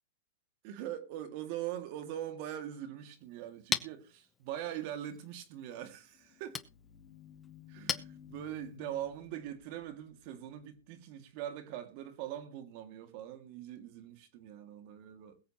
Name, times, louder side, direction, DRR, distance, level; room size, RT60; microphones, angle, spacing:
voice 1, 0.6-6.6 7.7-15.4, right 11 dB, 50° right, 2.2 m, -42 dB
Chink clink, 3.1-8.8, left 6 dB, 15° left, 0.8 m, -42 dB
sound 1, 5.9-11.4, left 8 dB, 35° left, 3.2 m, -56 dB
21.5 x 7.8 x 3.0 m
hypercardioid pair, 135°, 0 cm